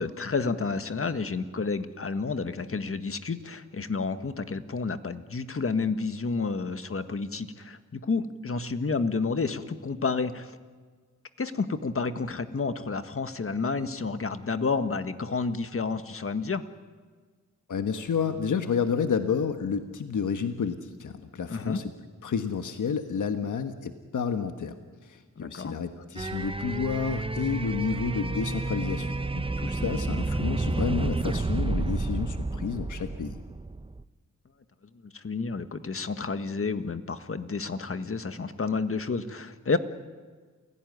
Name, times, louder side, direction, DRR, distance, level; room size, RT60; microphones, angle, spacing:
voice 1, 0.0-10.6 11.4-16.6 21.5-21.8 25.4-25.8 35.0-39.8, left 4 dB, 45° left, 9 dB, 1.7 m, -30 dB
voice 2, 17.7-21.9 22.2-24.7 25.0-33.4, left 6 dB, 80° left, 7 dB, 1.4 m, -30 dB
sound 1, 26.2-34.0, right 3 dB, 20° right, 0.8 m, -30 dB
28.0 x 17.0 x 9.5 m, 1.5 s
cardioid pair, 65°, 30 cm